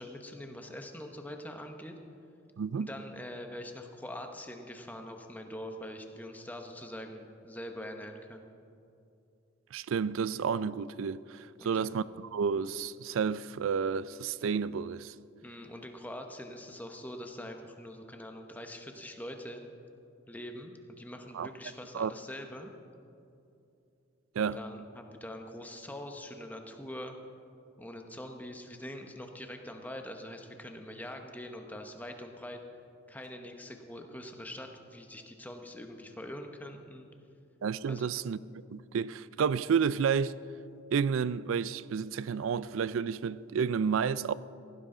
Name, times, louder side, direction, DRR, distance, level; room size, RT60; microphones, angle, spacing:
voice 1, 0.0-2.0 2.8-8.5 11.6-11.9 15.4-19.6 20.3-22.7 24.4-27.2 27.8-32.6 33.1-37.1 37.9-38.2, left 1 dB, 10° left, 0.9 m, -44 dB
voice 2, 2.6-2.9 9.7-12.0 12.3-15.1 21.3-21.5 21.9-22.1 24.4-24.6 37.6-38.4 38.7-40.3 40.9-44.3, right 6 dB, 75° right, 0.4 m, -30 dB
16.5 x 15.5 x 3.8 m
head